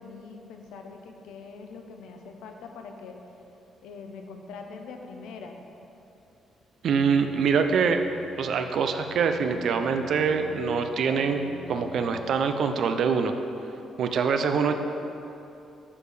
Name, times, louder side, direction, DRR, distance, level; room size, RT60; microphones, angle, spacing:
voice 1, 0.0-3.2 3.8-5.6, left 4 dB, 90° left, 4 dB, 0.6 m, -43 dB
voice 2, 6.8-8.0 8.4-13.3 14.0-14.7, right 5 dB, 65° right, 7 dB, 0.5 m, -24 dB
Bowed string instrument, 6.9-12.6, equal, 20° right, 1.3 m, -47 dB
7.0 x 4.7 x 5.0 m, 2.8 s
cardioid pair, 90°, 0 cm